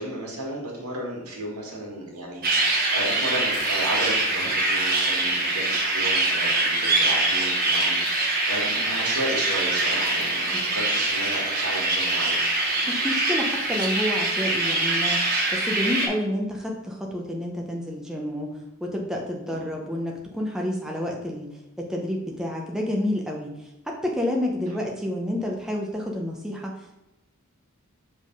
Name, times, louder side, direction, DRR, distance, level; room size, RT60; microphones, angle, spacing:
voice 1, 0.0-12.4 19.5-19.7 24.7-24.8, right 1 dB, 85° right, -2 dB, 2.0 m, -33 dB
sound 1, 2.4-16.1, right 2 dB, 40° right, 1.1 m, -24 dB
sound 2, 3.5-6.5, left 2 dB, 35° left, 1.0 m, -40 dB
voice 2, 12.9-15.2 15.5-18.5 18.8-21.5 21.8-23.5 23.9-26.7, left 1 dB, 5° right, -1 dB, 0.7 m, -29 dB
5.3 x 3.7 x 5.2 m, 0.95 s
head